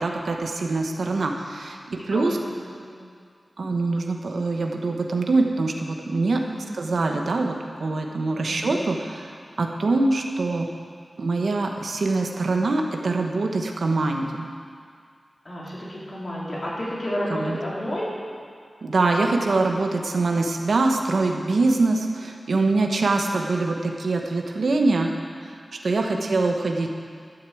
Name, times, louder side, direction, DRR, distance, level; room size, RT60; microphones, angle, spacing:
voice 1, 0.0-2.4 3.6-10.7 11.2-14.5 17.3-17.6 18.8-25.1 25.4-25.6 25.8-26.9, right 3 dB, 85° right, 2 dB, 1.2 m, -24 dB
voice 2, 2.6-2.9 6.4-6.7 8.4-8.7 15.4-18.1 23.1-23.4 26.0-26.3, equal, 45° left, -7 dB, 4.3 m, -32 dB
13.0 x 8.2 x 7.9 m, 2.1 s
wide cardioid pair, 80°, 0 cm